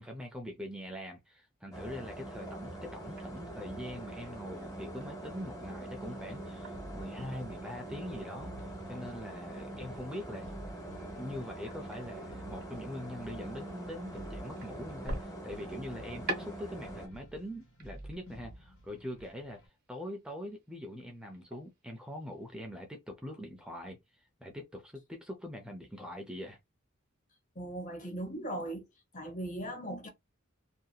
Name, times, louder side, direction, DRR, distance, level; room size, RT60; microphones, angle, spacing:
voice 1, 0.0-10.5 11.1-19.6 19.9-26.6, left 1 dB, 5° right, 0.5 m, -43 dB
sound 1, 1.7-17.1, right 1 dB, 15° left, 1.1 m, -44 dB
sound 2, 2.8-22.6, right 2 dB, 50° right, 0.9 m, -49 dB
sound 3, 6.0-19.7, right 1 dB, 75° left, 1.4 m, -52 dB
voice 2, 27.5-28.8 29.1-30.1, right 1 dB, 40° left, 0.9 m, -38 dB
2.8 x 2.5 x 2.3 m
head